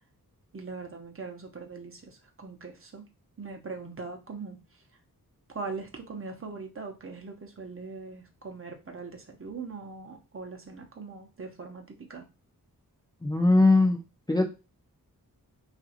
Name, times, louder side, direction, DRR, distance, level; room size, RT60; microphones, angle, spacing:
voice 1, 0.5-3.1 3.4-4.8 5.5-12.3, right 4 dB, 35° right, 2 dB, 0.7 m, -41 dB
voice 2, 13.2-14.0 14.3-14.5, left 2 dB, 10° left, 2 dB, 0.4 m, -20 dB
3.0 x 2.5 x 2.8 m, 0.28 s
wide cardioid pair, 85°, 36 cm